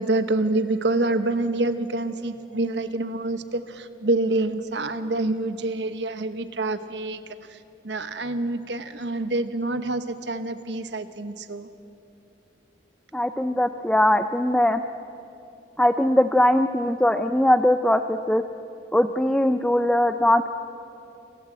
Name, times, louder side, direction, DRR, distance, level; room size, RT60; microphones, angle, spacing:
voice 1, 0.0-7.2 7.5-7.6 7.8-11.7, right 2 dB, 80° right, 10 dB, 1.0 m, -26 dB
voice 2, 13.1-14.8 15.8-18.4 18.9-20.5, left 1 dB, 5° left, 9 dB, 0.4 m, -20 dB
29.5 x 12.0 x 7.7 m, 2.7 s
head